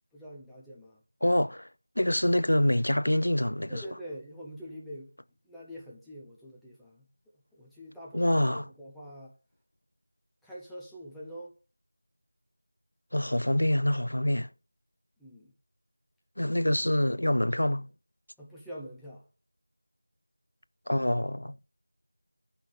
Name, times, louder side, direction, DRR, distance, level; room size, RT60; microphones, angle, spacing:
voice 1, 0.1-1.0 3.7-5.1 5.4-7.1 7.3-9.4 10.4-11.6 15.2-15.5 18.4-19.3, equal, ahead, 0.9 m, -45 dB
voice 2, 1.2-1.7 2.0-3.8 8.1-8.7 13.1-14.5 16.4-17.9 20.9-21.6, left 1 dB, 70° left, 0.5 m, -26 dB
10.5 x 5.6 x 5.0 m
figure-of-eight pair, 170°, 0 cm